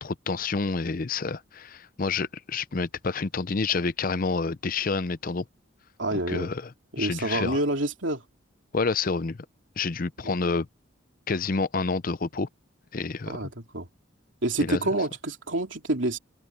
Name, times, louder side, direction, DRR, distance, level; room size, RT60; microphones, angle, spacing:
voice 1, 0.0-5.4 6.1-6.7 7.0-7.6 8.7-9.4 9.8-10.7 11.3-12.5 12.9-13.5 14.6-14.8, left 4 dB, 45° left, 0.6 m, -28 dB
voice 2, 6.0-6.5 6.9-8.2 10.2-10.3 13.3-13.9 14.4-16.2, right 2 dB, 70° right, 3.0 m, -28 dB
open air
head